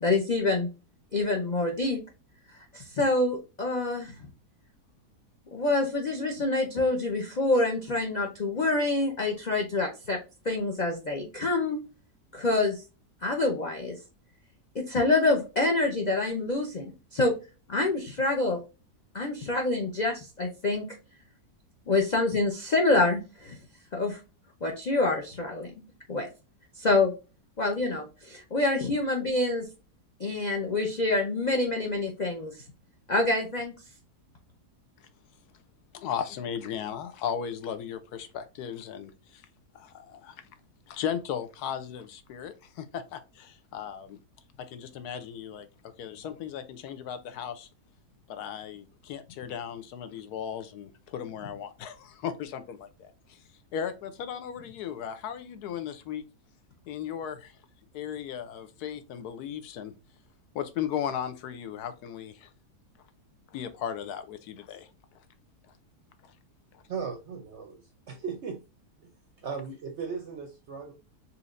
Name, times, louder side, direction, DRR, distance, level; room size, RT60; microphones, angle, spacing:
voice 1, 0.0-0.7 1.1-2.0 2.7-4.1 5.5-10.2 10.4-11.8 12.3-12.8 13.2-14.0 14.7-17.3 17.7-18.6 19.1-21.0 21.9-23.6 23.9-24.2 24.6-25.7 26.1-26.3 26.8-27.1 27.6-29.7 30.2-32.6 33.1-33.7, left 2 dB, 60° left, 0.4 m, -26 dB
voice 2, 35.9-39.4 39.7-40.4 40.9-44.2 44.7-45.7 46.0-47.7 48.3-53.4 53.7-56.2 56.9-57.5 57.9-59.9 60.5-62.5 63.5-64.9 66.2-66.3 66.7-66.8, left 8 dB, 75° left, 1.1 m, -36 dB
voice 3, 66.9-68.6 69.0-69.1 69.4-70.9, right 5 dB, 60° right, 0.7 m, -37 dB
4.3 x 2.7 x 2.4 m
omnidirectional pair, 1.8 m